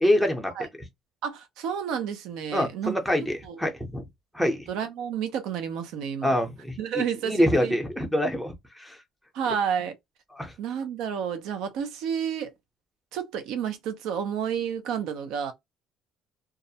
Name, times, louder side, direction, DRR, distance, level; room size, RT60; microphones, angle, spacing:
voice 1, 0.0-0.5 2.5-4.0 4.3-4.7 6.2-6.8 7.2-9.0 10.4-10.5, equal, ahead, 0.6 m, -25 dB
voice 2, 1.2-2.9 3.4-3.6 4.7-6.4 6.8-7.7 9.3-9.9 10.6-12.5 13.1-15.5, right 8 dB, 75° right, 0.5 m, -30 dB
2.3 x 2.0 x 2.7 m
cardioid pair, 155°, 0 cm